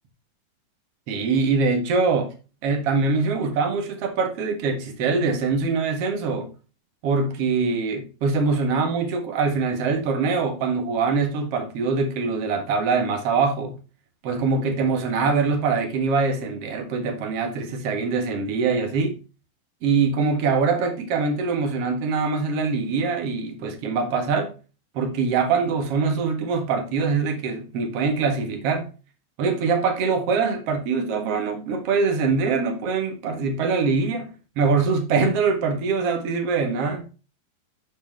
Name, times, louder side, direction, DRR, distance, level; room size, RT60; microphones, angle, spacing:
voice 1, 1.1-2.3 2.6-6.5 7.0-13.8 14.2-19.2 19.8-24.5 24.9-28.9 29.4-37.0, right 4 dB, 50° right, 2.3 m, -23 dB
9.3 x 6.5 x 3.1 m
omnidirectional pair, 4.0 m